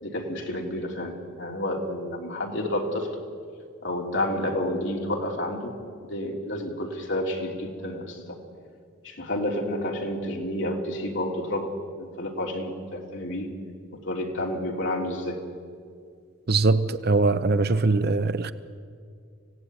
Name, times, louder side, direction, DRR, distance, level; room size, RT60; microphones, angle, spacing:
voice 1, 0.0-3.2 3.8-5.7 6.0-8.4 9.0-11.7 12.0-13.5 13.9-15.4, left 1 dB, 60° left, 3.3 m, -30 dB
voice 2, 16.5-18.5, right 3 dB, 50° right, 0.7 m, -22 dB
25.0 x 17.0 x 9.6 m
head